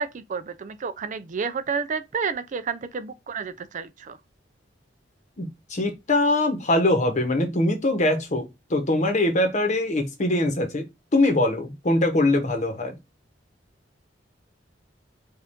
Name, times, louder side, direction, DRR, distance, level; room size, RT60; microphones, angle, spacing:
voice 1, 0.0-4.2, right 5 dB, 40° right, 0.4 m, -30 dB
voice 2, 5.4-10.8 11.1-13.0, left 2 dB, 40° left, 1.0 m, -22 dB
5.2 x 2.5 x 3.5 m
head